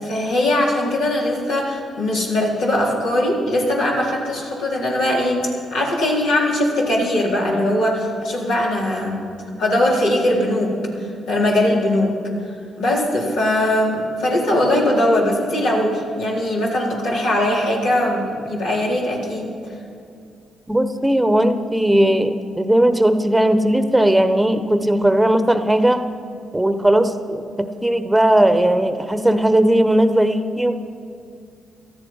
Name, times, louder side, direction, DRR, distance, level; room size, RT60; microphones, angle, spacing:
voice 1, 0.0-5.4 5.7-9.2 9.6-10.7 11.3-12.1 12.8-19.5, left 1 dB, 80° left, -4 dB, 4.0 m, -20 dB
voice 2, 20.7-26.1 26.5-30.7, right 1 dB, 10° right, 9 dB, 1.1 m, -17 dB
19.0 x 13.5 x 5.6 m, 2.5 s
supercardioid pair, 50°, 0 cm